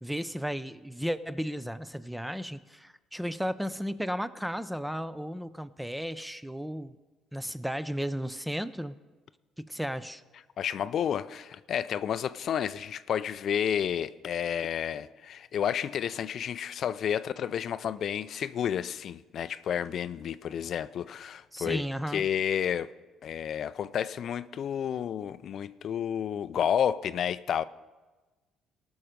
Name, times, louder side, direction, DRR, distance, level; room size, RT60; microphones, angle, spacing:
voice 1, 0.0-6.9 7.3-8.9 9.6-10.2 21.5-22.2, equal, 5° right, 0.5 m, -34 dB
voice 2, 10.6-21.8 22.1-22.9 23.2-27.6, left 9 dB, 55° left, 0.3 m, -31 dB
18.5 x 6.3 x 5.1 m
cardioid pair, 90°, 0 cm